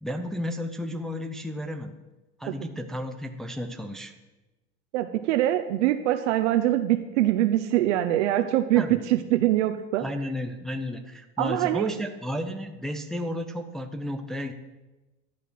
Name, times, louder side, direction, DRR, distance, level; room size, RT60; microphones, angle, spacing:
voice 1, 0.0-2.0 2.4-4.1 8.7-9.1 10.0-14.5, left 1 dB, ahead, 4 dB, 0.6 m, -33 dB
voice 2, 4.9-10.0 11.4-11.9, right 14 dB, 80° right, 7 dB, 0.9 m, -23 dB
12.5 x 8.4 x 6.3 m, 1.1 s
supercardioid pair, 145°, 35 cm